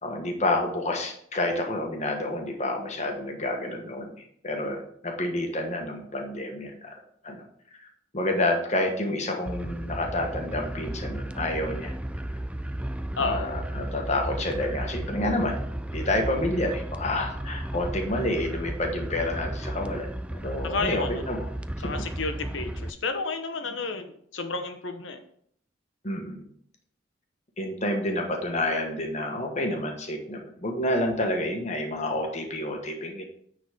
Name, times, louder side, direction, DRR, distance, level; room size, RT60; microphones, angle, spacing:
voice 1, 0.0-4.1 4.4-7.4 7.8-7.9 8.1-11.9 13.2-15.6 15.9-21.5 21.8-21.9 26.0-26.4 27.6-33.2, left 1 dB, 35° left, 2 dB, 1.3 m, -29 dB
sound 1, 9.5-22.9, right 1 dB, 5° right, 0.3 m, -34 dB
voice 2, 13.2-13.5 20.6-21.2 21.8-25.2, left 3 dB, 85° left, 7 dB, 1.0 m, -31 dB
9.5 x 4.1 x 5.1 m, 0.65 s
head